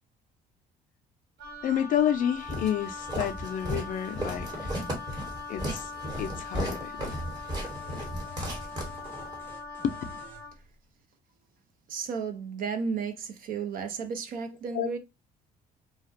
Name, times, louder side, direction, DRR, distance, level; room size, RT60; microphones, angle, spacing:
Wind instrument woodwind instrument, 1.4-10.6, left 4 dB, 80° right, 1.1 m, -41 dB
voice 1, 1.6-4.7 5.5-5.9 6.2-7.2 9.8-10.0 14.7-15.0, left 9 dB, 50° left, 0.4 m, -30 dB
Walk footsteps, 2.5-9.4, equal, 25° right, 1.0 m, -35 dB
sound 1, 7.6-10.5, left 4 dB, 15° left, 0.7 m, -50 dB
voice 2, 11.9-15.0, right 5 dB, 55° right, 0.5 m, -33 dB
2.3 x 2.1 x 2.6 m
cardioid pair, 110°, 17 cm